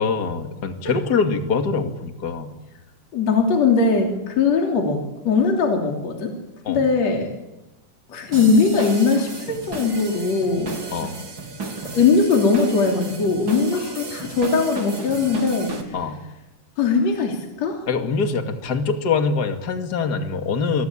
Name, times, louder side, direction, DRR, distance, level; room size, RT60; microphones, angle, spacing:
voice 1, 0.0-2.5 6.6-6.9 10.9-11.2 13.7-13.9 15.9-16.2 17.9-20.8, left 5 dB, 35° left, 6 dB, 2.5 m, -24 dB
voice 2, 3.1-6.3 6.7-7.3 8.1-10.7 11.9-15.8 16.8-17.9, left 4 dB, 55° left, 2 dB, 4.3 m, -20 dB
sound 1, 8.3-15.8, right 3 dB, 35° right, 4.4 m, -33 dB
27.5 x 24.5 x 8.8 m, 0.96 s
omnidirectional pair, 3.8 m